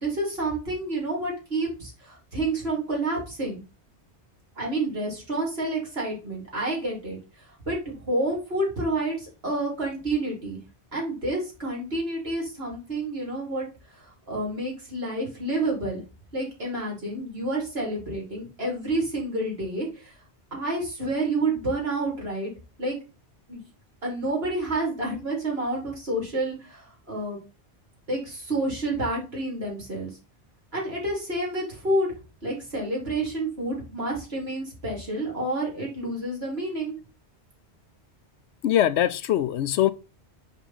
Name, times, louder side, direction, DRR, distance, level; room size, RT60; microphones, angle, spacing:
voice 1, 0.0-3.6 4.6-7.2 7.7-10.6 10.9-13.7 13.9-16.0 16.3-20.1 20.5-22.5 22.8-23.0 23.5-23.6 24.0-27.4 28.1-30.1 30.7-32.1 32.4-36.9, right 2 dB, 60° right, 3.3 m, -29 dB
voice 2, 38.6-39.9, left 11 dB, 80° left, 0.9 m, -22 dB
5.4 x 5.2 x 4.2 m
omnidirectional pair, 1.2 m